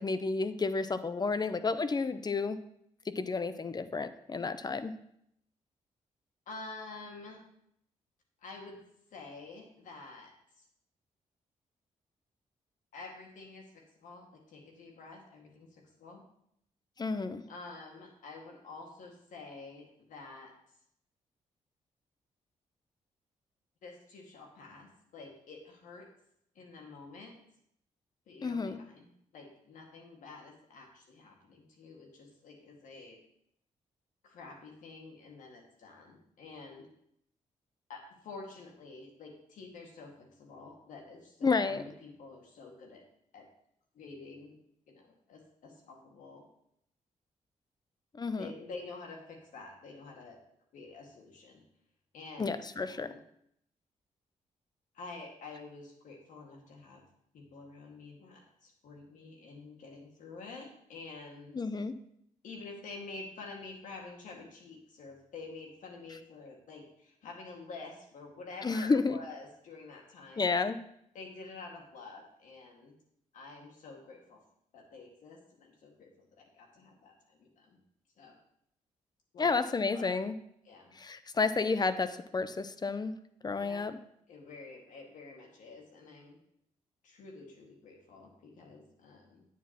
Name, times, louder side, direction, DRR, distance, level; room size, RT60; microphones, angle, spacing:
voice 1, 0.0-2.6 3.1-5.0 17.0-17.4 28.4-28.8 41.4-41.8 48.2-48.5 52.4-53.1 61.5-62.0 68.6-69.2 70.4-70.8 79.4-80.4 81.0-83.1 83.4-84.0, left 4 dB, 30° left, 12 dB, 0.7 m, -31 dB
voice 2, 6.5-7.4 8.4-8.8 9.1-10.7 12.9-16.2 17.5-20.5 23.8-26.1 26.6-27.4 28.3-33.2 34.2-36.9 37.9-43.0 43.3-43.5 43.9-44.6 44.9-46.5 48.4-50.4 50.7-51.6 52.1-52.6 52.9-53.2 54.9-57.0 57.3-61.6 62.4-70.5 71.1-72.9 73.3-74.4 74.7-77.8 78.2-78.4 79.3-80.1 80.6-80.9 83.5-83.9 84.3-86.4 87.0-89.4, left 3 dB, 80° left, 1 dB, 1.9 m, -48 dB
9.2 x 8.3 x 3.0 m, 0.73 s
cardioid pair, 60°, 13 cm